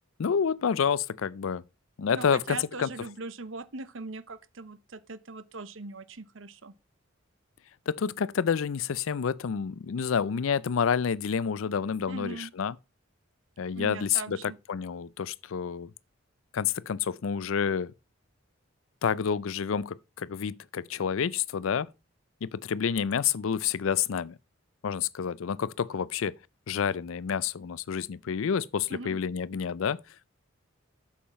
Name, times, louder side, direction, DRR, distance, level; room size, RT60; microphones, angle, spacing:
voice 1, 0.2-1.6 2.0-2.9 7.9-12.8 13.6-15.9 16.5-17.9 19.0-21.9 22.4-24.4 24.8-26.4 26.7-30.0, left 7 dB, 80° left, 0.4 m, -29 dB
voice 2, 2.1-6.7 12.1-12.5 13.7-14.6 28.9-29.2, right 3 dB, 70° right, 0.9 m, -40 dB
8.7 x 7.4 x 4.3 m
head